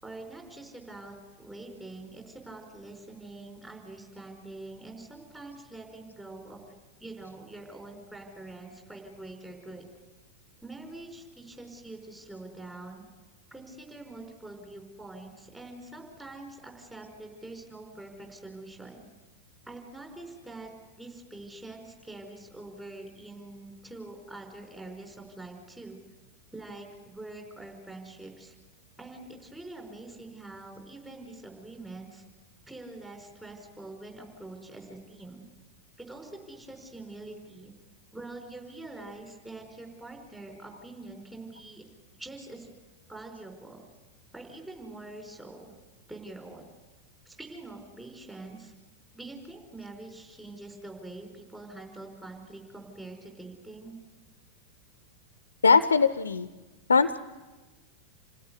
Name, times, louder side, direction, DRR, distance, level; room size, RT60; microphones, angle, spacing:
voice 1, 0.0-6.7 7.0-9.9 10.6-13.0 13.5-19.0 19.6-20.7 21.0-26.0 26.5-28.5 29.0-32.2 32.7-35.5 36.0-37.7 38.1-41.8 42.1-42.7 43.1-43.8 44.3-45.7 46.1-46.6 47.2-48.7 49.1-54.0, right 2 dB, 10° right, 2 dB, 4.8 m, -45 dB
voice 2, 55.6-56.5 56.9-57.2, left 5 dB, 75° left, 14 dB, 0.6 m, -21 dB
28.5 x 16.5 x 8.2 m, 1.2 s
figure-of-eight pair, 90°, 0 cm